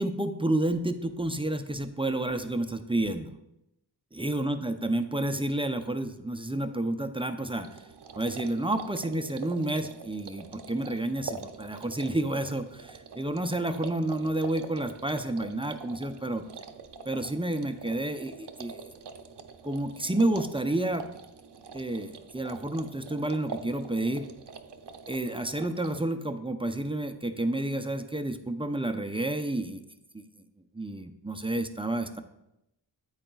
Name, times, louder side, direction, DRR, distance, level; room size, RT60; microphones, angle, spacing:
voice 1, 0.0-3.3 4.1-7.8 8.1-16.4 17.1-18.9 19.6-21.1 21.7-24.3 25.1-29.8 30.1-30.2 30.7-32.2, right 1 dB, 10° right, 7 dB, 0.5 m, -30 dB
sound 1, 7.5-26.1, right 5 dB, 65° right, 0.7 m, -45 dB
8.8 x 8.8 x 2.3 m, 0.86 s
wide cardioid pair, 70°, 44 cm